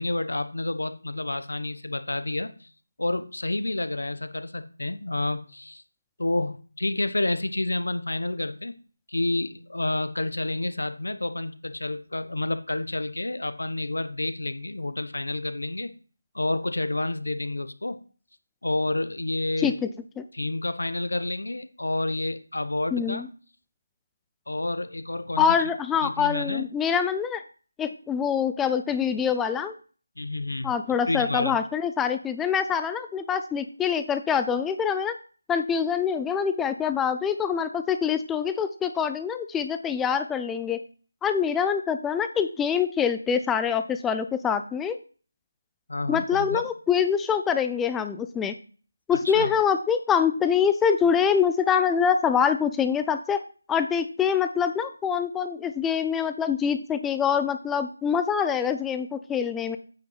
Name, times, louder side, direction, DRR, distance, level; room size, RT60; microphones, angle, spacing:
voice 1, 0.0-2.7 3.0-5.8 6.2-8.7 9.1-15.9 16.3-18.0 18.6-19.8 20.3-23.2 24.5-25.6 26.0-26.7 30.2-30.7 31.1-31.6 45.9-46.6 49.2-49.5, left 2 dB, 85° left, 11 dB, 1.1 m, -29 dB
voice 2, 19.6-19.9 20.2-20.3 22.9-23.3 25.4-27.4 27.8-29.8 30.6-35.2 35.5-40.8 41.2-45.0 46.1-48.5 49.1-53.4 53.7-59.8, left 7 dB, 5° left, 9 dB, 0.5 m, -25 dB
9.1 x 5.4 x 5.7 m, 0.39 s
figure-of-eight pair, 165°, 0 cm